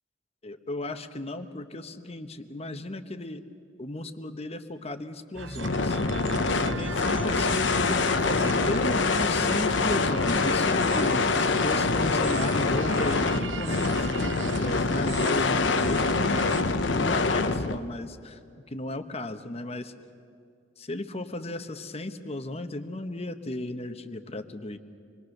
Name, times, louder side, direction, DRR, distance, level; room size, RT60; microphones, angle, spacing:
voice 1, 0.4-3.4 3.8-6.0 6.5-14.3 14.6-16.5 16.9-18.4 18.7-19.9 20.8-24.8, left 2 dB, 35° left, 9 dB, 1.0 m, -35 dB
sound 1, 5.3-16.6, right 4 dB, 80° right, 0.8 m, -39 dB
sound 2, 5.6-17.8, left 3 dB, 85° left, 0.9 m, -25 dB
26.5 x 21.5 x 6.6 m, 2.3 s
head